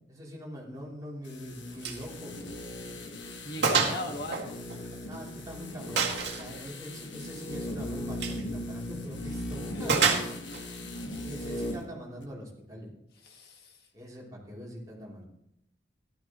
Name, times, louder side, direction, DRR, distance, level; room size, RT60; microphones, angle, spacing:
voice 1, 0.1-2.5 3.4-4.2 5.1-6.1 6.4-10.3 10.7-12.9 13.9-15.2, equal, 20° right, -4 dB, 3.1 m, -43 dB
sound 1, 1.2-11.9 12.2-12.3, left 1 dB, 80° left, 1.5 m, -38 dB
Gunshot gunfire, 1.8-2.0 2.4-2.5 3.0-3.1 3.6-4.0 4.3-5.3 6.0-6.5 8.1-8.4 9.9-10.6, right 5 dB, 65° right, 2.0 m, -27 dB
voice 2, 3.4-4.5 9.7-10.0 10.8-11.2 13.2-13.8, left 1 dB, 55° left, 3 dB, 1.7 m, -39 dB
15.0 x 12.5 x 3.0 m, 0.80 s
head